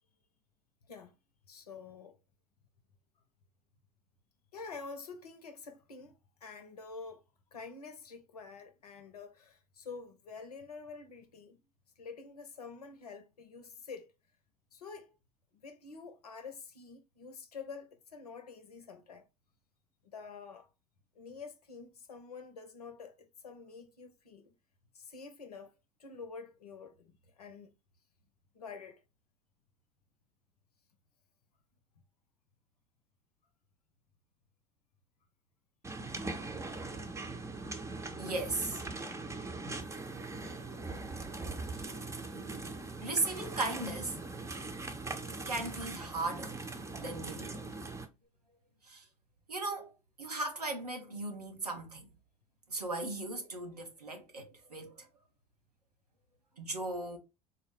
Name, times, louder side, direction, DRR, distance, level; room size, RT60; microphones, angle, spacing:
voice 1, 1.5-2.2 4.5-7.2 7.5-11.6 12.0-14.1 14.7-15.2 15.5-19.3 20.0-20.7 21.1-24.5 24.9-27.7 28.5-29.0, left 5 dB, 80° left, 0.7 m, -48 dB
sound 1, 35.8-48.1, right 3 dB, 15° right, 0.7 m, -41 dB
voice 2, 38.2-38.8 41.7-41.9 43.0-44.2 45.4-46.6 47.0-47.6 48.8-49.0 49.5-49.9 50.2-52.1 52.7-55.1 56.6-57.2, right 2 dB, 90° right, 0.8 m, -37 dB
4.0 x 2.0 x 3.1 m
figure-of-eight pair, 70°, 19 cm